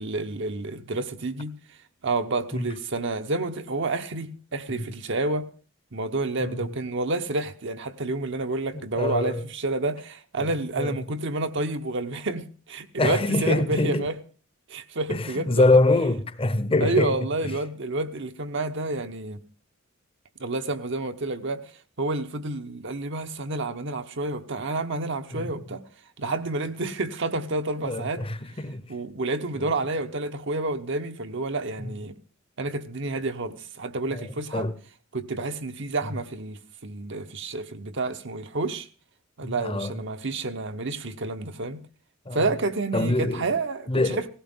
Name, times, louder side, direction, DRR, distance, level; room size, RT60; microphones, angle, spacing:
voice 1, 0.0-1.5 2.0-5.5 5.9-14.2 14.7-15.8 16.8-19.4 20.4-21.6 22.0-25.8 26.2-28.2 28.9-32.1 32.6-34.7 35.1-38.9 39.4-41.8 42.3-44.3, right 2 dB, 65° right, 1.0 m, -29 dB
voice 2, 8.7-9.4 10.4-10.5 10.8-11.0 13.0-14.1 15.1-17.2 17.4-17.5 25.3-25.5 27.8-28.8 29.6-29.8 31.8-31.9 34.1-34.7 39.4-39.9 42.3-42.5 42.9-43.5 43.9-44.2, left 2 dB, 25° left, 0.8 m, -25 dB
18.0 x 16.0 x 3.7 m
head